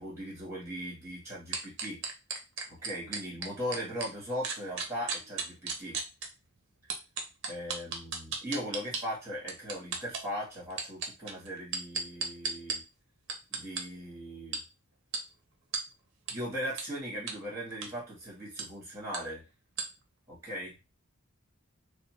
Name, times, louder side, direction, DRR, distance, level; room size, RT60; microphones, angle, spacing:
voice 1, 0.0-2.0 2.7-6.0 7.5-12.8 13.5-14.6 16.3-19.4 20.3-20.7, equal, 15° right, -5 dB, 1.3 m, -38 dB
sound 1, 1.5-4.1 4.4-6.3 6.9-9.0 9.5-10.2 10.7-12.8 13.3-13.8 14.5-14.6 15.1-15.2 15.7-15.8 16.3-16.4 16.8-16.9 17.3-17.4 17.7-17.9 18.6-18.7 19.1-19.2 19.8-19.9, right 5 dB, 55° right, 0.6 m, -34 dB
2.6 x 2.2 x 3.0 m, 0.28 s
head